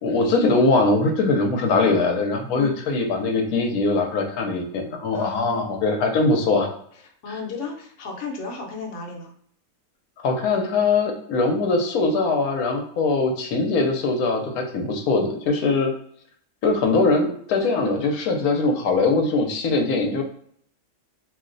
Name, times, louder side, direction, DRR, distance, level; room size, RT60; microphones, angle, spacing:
voice 1, 0.0-6.7 10.2-15.9 16.6-20.2, left 3 dB, 90° left, 2 dB, 1.1 m, -21 dB
voice 2, 5.1-5.7 7.2-9.3, left 4 dB, 60° left, 1 dB, 1.0 m, -34 dB
2.7 x 2.0 x 3.8 m, 0.63 s
omnidirectional pair, 1.5 m